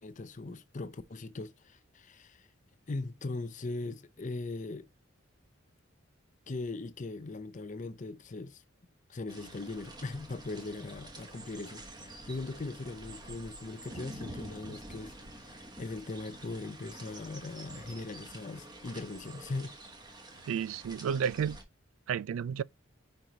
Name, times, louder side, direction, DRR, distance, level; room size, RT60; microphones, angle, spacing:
voice 1, 0.0-2.5 2.9-4.9 6.5-8.6 9.1-19.7, left 3 dB, 40° left, 0.5 m, -40 dB
sound 1, 9.3-21.6, right 1 dB, 20° right, 1.1 m, -48 dB
voice 2, 20.5-21.6 22.1-22.6, right 7 dB, 90° right, 0.3 m, -31 dB
5.3 x 4.6 x 3.9 m
head